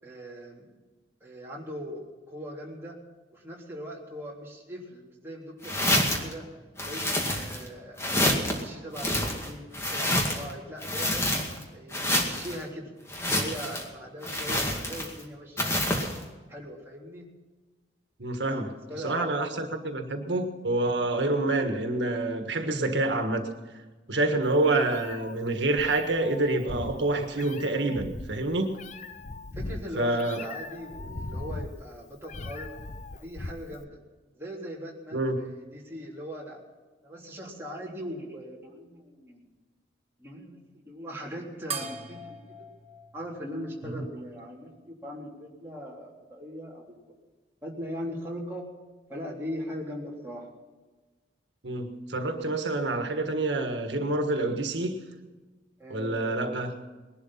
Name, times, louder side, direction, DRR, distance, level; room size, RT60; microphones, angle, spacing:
voice 1, 0.0-0.7 1.2-3.0 3.3-6.5 6.8-8.0 8.5-11.3 11.7-12.9 13.3-16.0 16.5-17.3 18.5-19.3 29.5-32.7 33.1-34.0 34.3-36.6 37.0-39.5 40.2-42.7 43.1-47.1 47.6-48.7 49.1-50.5 55.8-56.6, equal, 15° right, -4 dB, 3.5 m, -40 dB
sound 1, 5.6-6.3 6.8-7.7 8.0-8.6 8.9-10.5 10.8-11.6 11.9-12.6 13.1-13.9 14.2-15.2 15.6-16.2, left 1 dB, 15° left, 2.1 m, -27 dB
voice 2, 18.2-18.7 19.0-23.5 24.1-28.8 30.0-30.4 35.1-35.4 43.9-44.0 51.6-55.0 55.9-56.7, right 2 dB, 85° right, 5 dB, 1.6 m, -27 dB
Meow, 24.5-33.8, left 2 dB, 40° left, 0.7 m, -40 dB
sound 2, 41.7-44.5, right 4 dB, 35° right, 1.4 m, -41 dB
20.5 x 12.0 x 5.7 m, 1.3 s
head